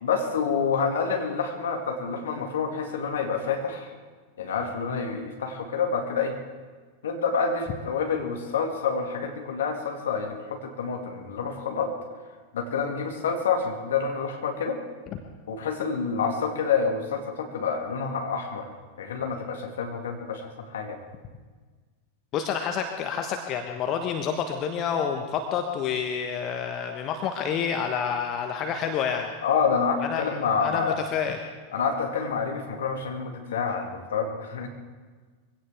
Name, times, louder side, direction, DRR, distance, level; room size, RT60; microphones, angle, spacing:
voice 1, 0.0-3.9 4.4-6.4 7.0-12.0 12.5-14.8 15.5-18.7 19.0-21.0 29.4-31.0 31.7-34.7, left 5 dB, 60° left, 2 dB, 2.1 m, -28 dB
voice 2, 22.3-29.3 30.0-31.4, left 7 dB, 35° left, 4 dB, 1.2 m, -29 dB
23.5 x 16.5 x 3.5 m, 1.5 s
figure-of-eight pair, 90°, 0 cm